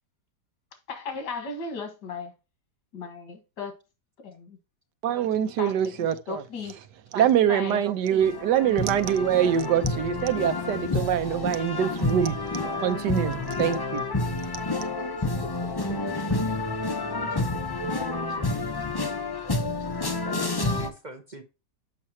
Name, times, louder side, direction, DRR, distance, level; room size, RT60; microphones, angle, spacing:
voice 1, 0.9-2.3 2.9-3.8 4.2-4.6 5.6-6.7 7.2-7.8 19.4-19.6, left 4 dB, 85° left, 2.2 m, -36 dB
voice 2, 5.0-6.4 7.1-12.4 12.8-14.0 14.5-14.6, right 10 dB, 85° right, 1.4 m, -24 dB
sound 1, 8.2-20.9, left 2 dB, 35° left, 0.4 m, -29 dB
voice 3, 15.4-15.7 17.3-17.4 17.8-17.9 18.3-18.4 20.2-21.4, right 2 dB, 40° right, 0.7 m, -43 dB
7.5 x 5.9 x 2.8 m
omnidirectional pair, 1.8 m